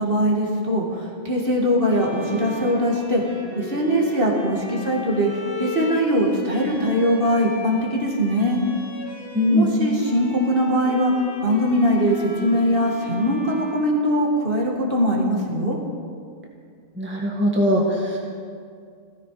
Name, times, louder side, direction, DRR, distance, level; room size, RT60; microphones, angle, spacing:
voice 1, 0.0-3.2 3.5-5.3 5.6-8.6 9.5-11.1 11.4-15.8, equal, 40° right, -3 dB, 2.3 m, -21 dB
Bowed string instrument, 1.8-9.7 10.0-14.8, left 1 dB, 40° left, 2.4 m, -37 dB
voice 2, 9.3-9.7 16.9-18.2, left 1 dB, 10° right, -2 dB, 1.6 m, -20 dB
16.0 x 14.5 x 5.0 m, 2.2 s
omnidirectional pair, 1.5 m